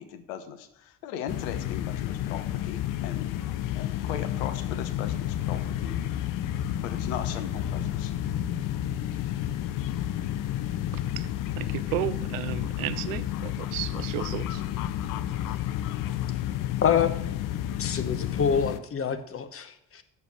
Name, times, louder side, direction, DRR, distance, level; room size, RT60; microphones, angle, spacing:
voice 1, 0.0-3.3 3.7-6.0 6.8-8.1, left 9 dB, 70° left, 10 dB, 1.1 m, -38 dB
sound 1, 1.3-18.8, left 11 dB, 50° left, 0.7 m, -31 dB
voice 2, 11.6-14.6, right 15 dB, 70° right, 17 dB, 0.6 m, -33 dB
voice 3, 16.8-17.1 17.8-20.0, left 7 dB, 30° left, 10 dB, 1.1 m, -26 dB
8.4 x 7.0 x 6.0 m, 0.78 s
figure-of-eight pair, 55°, 42 cm